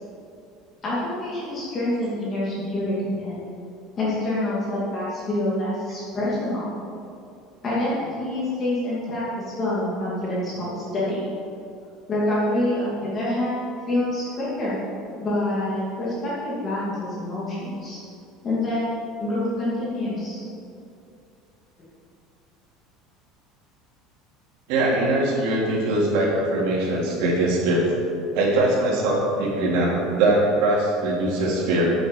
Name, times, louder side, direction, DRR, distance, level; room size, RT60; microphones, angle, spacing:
voice 1, 0.8-3.4 4.0-6.7 7.6-11.3 12.1-13.6 13.9-14.8 15.2-18.0 18.4-20.4, left 1 dB, 25° left, -7 dB, 2.5 m, -26 dB
voice 2, 24.7-27.9 28.3-31.9, right 2 dB, 60° right, -4 dB, 3.3 m, -21 dB
10.0 x 7.8 x 7.1 m, 2.5 s
cardioid pair, 175°, 0 cm